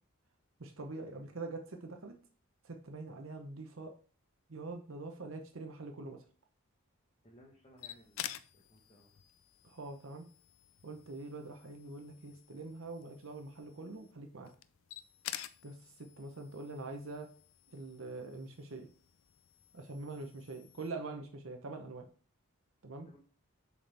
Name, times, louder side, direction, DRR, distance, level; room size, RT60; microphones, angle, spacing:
voice 1, 0.6-2.1 2.6-3.9 4.5-6.2 9.6-10.2 10.8-14.5 15.6-17.3 17.7-18.9 19.7-22.1 22.8-23.1, right 3 dB, 60° right, 4 dB, 0.8 m, -44 dB
voice 2, 7.2-9.1 23.0-23.2, equal, 25° left, -4 dB, 1.1 m, -61 dB
sound 1, 7.8-20.9, left 12 dB, 65° left, 0.4 m, -50 dB
7.1 x 4.2 x 3.4 m, 0.40 s
head